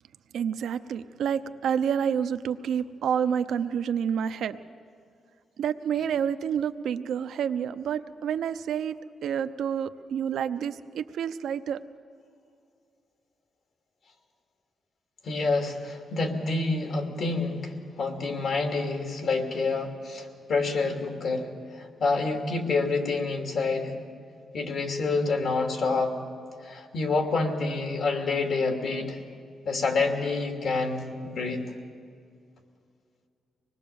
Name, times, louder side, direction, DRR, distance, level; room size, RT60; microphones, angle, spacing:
voice 1, 0.3-4.6 5.6-8.9 9.2-11.8, right 8 dB, 80° right, 11 dB, 0.7 m, -28 dB
voice 2, 15.2-21.5 21.7-23.9 24.5-26.1 26.6-29.2 29.6-31.6, left 3 dB, 65° left, 3 dB, 2.8 m, -28 dB
25.0 x 20.0 x 7.0 m, 2.3 s
cardioid pair, 105°, 0 cm